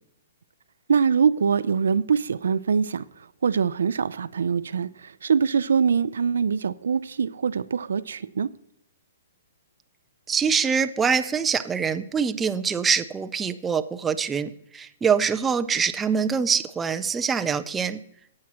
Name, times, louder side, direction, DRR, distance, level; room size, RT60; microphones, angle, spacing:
voice 1, 0.9-3.0 3.4-8.5, right 6 dB, 85° right, 0.5 m, -23 dB
voice 2, 10.3-18.0, right 6 dB, 10° right, 0.4 m, -24 dB
18.0 x 7.5 x 2.9 m
hypercardioid pair, 165°, 0 cm